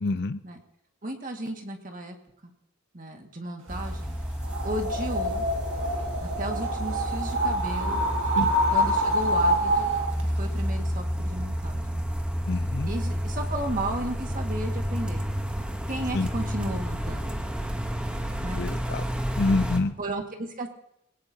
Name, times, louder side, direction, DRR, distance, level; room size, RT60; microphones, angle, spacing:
voice 1, 0.0-0.4 8.4-8.5 12.5-12.9 16.1-16.3 18.6-19.0 19.4-19.9, left 3 dB, 50° left, 13 dB, 0.6 m, -26 dB
voice 2, 1.0-2.2 2.9-4.2 4.6-5.5 6.2-8.1 8.7-9.9 10.2-12.0 12.9-15.2 15.9-17.4 18.4-18.7 20.0-20.7, right 1 dB, 40° right, 3 dB, 1.9 m, -34 dB
sound 1, 3.7-19.8, equal, 5° right, 1.0 m, -31 dB
sound 2, 4.4-10.2, equal, 70° right, 2.1 m, -26 dB
21.0 x 18.0 x 2.8 m, 0.78 s
head